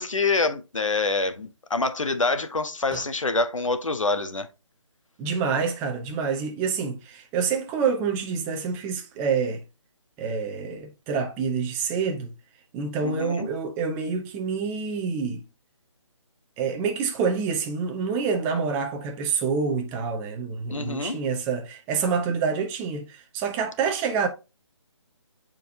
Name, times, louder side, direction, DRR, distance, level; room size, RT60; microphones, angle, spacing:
voice 1, 0.0-4.5 13.0-13.5 20.7-21.2, left 3 dB, 80° left, 1.3 m, -26 dB
voice 2, 5.2-9.6 10.2-12.3 12.7-15.4 16.6-24.3, right 5 dB, 10° right, 0.8 m, -27 dB
8.0 x 4.5 x 2.8 m
figure-of-eight pair, 155°, 16 cm